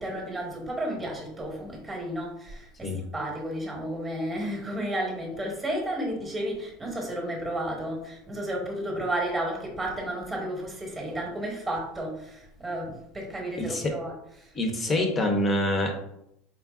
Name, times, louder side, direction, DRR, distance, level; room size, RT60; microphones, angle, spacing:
voice 1, 0.0-14.4, right 1 dB, 10° right, -1 dB, 1.0 m, -32 dB
voice 2, 13.6-13.9 14.5-15.9, left 1 dB, 20° left, 4 dB, 0.6 m, -26 dB
4.3 x 3.5 x 2.4 m, 0.78 s
supercardioid pair, 155°, 0 cm